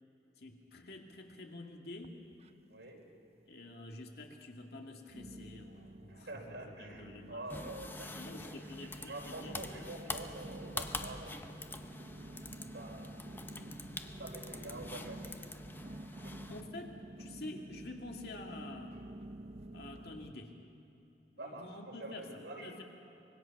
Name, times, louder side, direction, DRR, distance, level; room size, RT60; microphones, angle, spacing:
voice 1, 0.4-2.2 3.5-7.5 8.2-9.6 16.5-16.9 17.2-19.0 19.7-20.6 21.4-22.8, left 2 dB, 60° left, 2 dB, 2.3 m, -48 dB
sound 1, 2.0-2.9 3.2-3.8 4.3-4.4 5.1-20.3, right 1 dB, 35° right, 0.6 m, -50 dB
voice 2, 2.7-3.0 6.1-11.7 12.7-13.1 14.2-15.4 16.2-16.5 21.4-22.8, right 2 dB, 85° right, -1 dB, 4.6 m, -47 dB
sound 2, 7.5-16.6, left 2 dB, 10° left, 0.8 m, -45 dB
25.0 x 22.0 x 6.0 m, 2.8 s
head